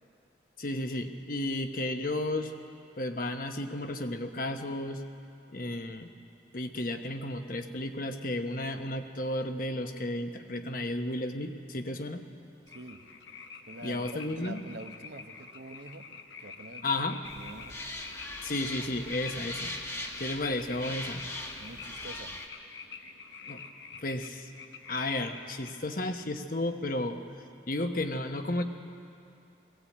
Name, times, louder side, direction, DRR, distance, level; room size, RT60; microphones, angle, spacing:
voice 1, 0.6-2.5 3.0-5.0 5.5-6.1 6.5-12.3 13.8-14.6 16.8-17.2 18.4-19.8 20.2-21.2 23.5-23.6 24.0-24.5 24.9-27.2 27.7-28.6, left 1 dB, 50° left, 6 dB, 1.2 m, -33 dB
sound 1, 12.7-25.8, left 5 dB, 80° left, 1.2 m, -47 dB
voice 2, 12.7-13.1 13.7-16.1 16.4-17.8 21.6-22.4, right 2 dB, 70° right, 6 dB, 1.1 m, -46 dB
sound 2, 17.2-22.5, left 1 dB, 15° left, 1.2 m, -40 dB
20.5 x 16.5 x 8.7 m, 2.7 s
head